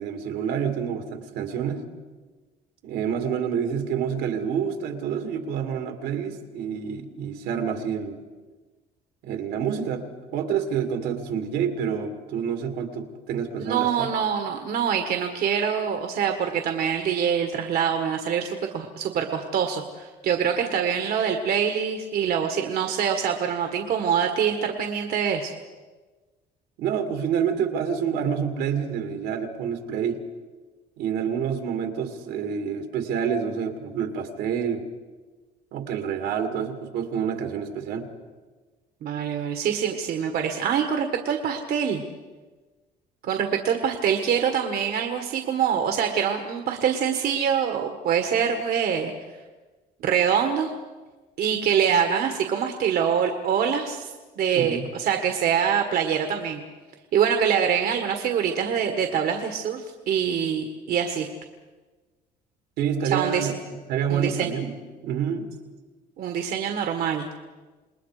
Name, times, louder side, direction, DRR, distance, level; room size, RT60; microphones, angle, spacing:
voice 1, 0.0-1.9 2.8-8.2 9.2-10.1 10.3-14.1 26.8-30.2 31.0-34.8 35.7-38.1 54.5-54.9 62.8-63.6 63.9-64.7 65.0-65.5, right 7 dB, 80° right, 6 dB, 2.4 m, -28 dB
voice 2, 13.6-25.5 39.0-42.0 43.2-49.1 50.0-50.7 51.4-56.6 57.1-61.3 63.1-63.5 64.1-64.5 66.2-67.3, right 8 dB, 65° right, 5 dB, 1.7 m, -25 dB
28.0 x 20.5 x 5.0 m, 1.3 s
cardioid pair, 110°, 17 cm